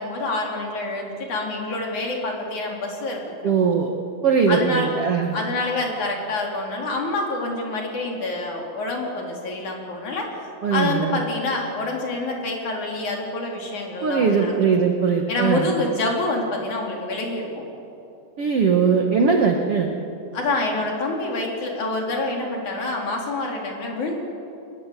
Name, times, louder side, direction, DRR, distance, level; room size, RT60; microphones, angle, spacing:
voice 1, 0.0-3.5 4.5-4.9 5.3-10.3 10.7-14.5 15.3-17.6 20.3-24.2, left 2 dB, 45° left, 0 dB, 4.8 m, -27 dB
voice 2, 3.4-3.9 4.2-5.3 10.6-11.2 14.0-15.7 18.4-19.9, right 5 dB, 70° right, 3 dB, 1.3 m, -20 dB
28.0 x 21.0 x 8.3 m, 2.7 s
omnidirectional pair, 5.1 m